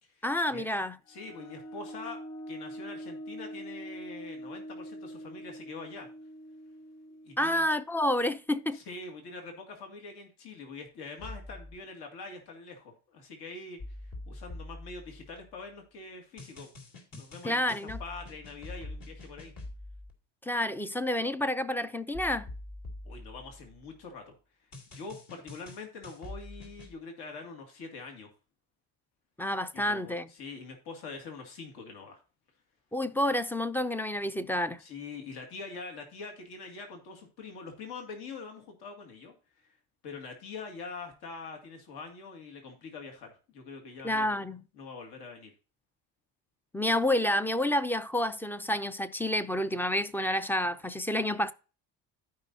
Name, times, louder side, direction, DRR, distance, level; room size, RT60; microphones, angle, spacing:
voice 1, 0.2-1.0 7.4-8.8 17.4-18.0 20.4-22.5 29.4-30.3 32.9-34.8 44.0-44.6 46.7-51.5, left 1 dB, 5° left, 0.4 m, -29 dB
voice 2, 1.1-2.2 2.5-6.1 7.2-7.7 8.7-16.7 17.2-17.6 18.0-19.5 23.0-24.4 24.9-28.3 29.7-32.2 34.8-39.7 40.0-44.4 44.8-45.5, left 4 dB, 70° left, 2.3 m, -44 dB
sound 1, 1.1-8.5, equal, 40° left, 2.9 m, -44 dB
sound 2, 11.2-11.8 13.8-15.7 16.4-20.1 22.1-24.0 24.7-27.0, left 2 dB, 55° left, 3.1 m, -45 dB
14.0 x 5.4 x 2.7 m
cardioid pair, 125°, 41 cm